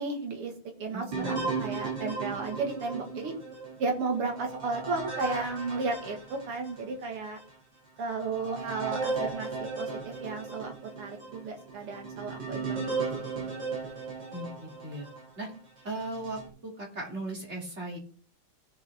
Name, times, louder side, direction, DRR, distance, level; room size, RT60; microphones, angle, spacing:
voice 1, 0.0-3.3 3.8-7.4 8.0-13.1 13.3-13.5, right 3 dB, 90° right, 4 dB, 2.8 m, -34 dB
voice 2, 0.9-1.5 14.3-15.1 15.4-15.5 15.8-18.0, right 2 dB, 30° right, -1 dB, 3.1 m, -38 dB
sound 1, 1.1-6.9 7.4-7.5 8.1-15.3 15.9-16.5, right 4 dB, 50° right, 3.3 m, -36 dB
17.5 x 6.5 x 3.6 m, 0.43 s
omnidirectional pair, 2.4 m